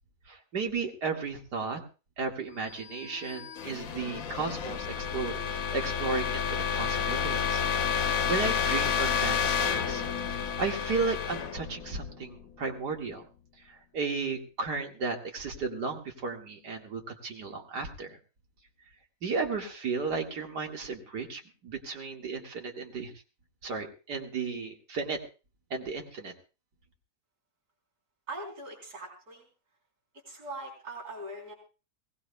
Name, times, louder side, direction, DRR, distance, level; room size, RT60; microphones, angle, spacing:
voice 1, 0.3-1.8 2.2-7.6 7.9-13.2 13.7-18.2 19.2-23.1 23.6-25.2 25.7-26.3, right 4 dB, 90° right, 2 dB, 2.6 m, -34 dB
sound 1, 2.9-12.6, left 7 dB, 60° left, 1.2 m, -30 dB
voice 2, 28.3-29.4 30.3-31.5, right 1 dB, 70° right, 0 dB, 4.5 m, -41 dB
22.5 x 18.5 x 2.3 m, 0.34 s
omnidirectional pair, 1.7 m